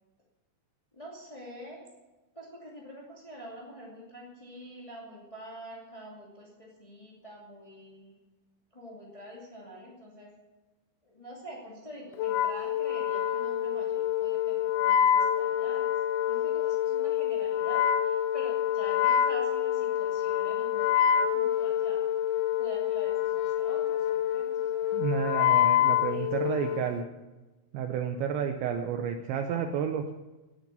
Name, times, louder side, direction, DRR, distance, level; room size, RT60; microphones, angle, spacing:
voice 1, 0.9-1.8 2.3-8.2 8.7-10.3 11.0-15.9 16.3-22.1 22.6-25.0 26.1-26.7, equal, 20° left, -4 dB, 0.9 m, -46 dB
Wind instrument woodwind instrument, 12.2-26.9, left 10 dB, 80° left, 3.0 m, -27 dB
voice 2, 24.9-27.0 27.7-30.1, right 7 dB, 75° right, 5 dB, 3.0 m, -31 dB
18.0 x 8.9 x 7.0 m, 1.1 s
omnidirectional pair, 5.5 m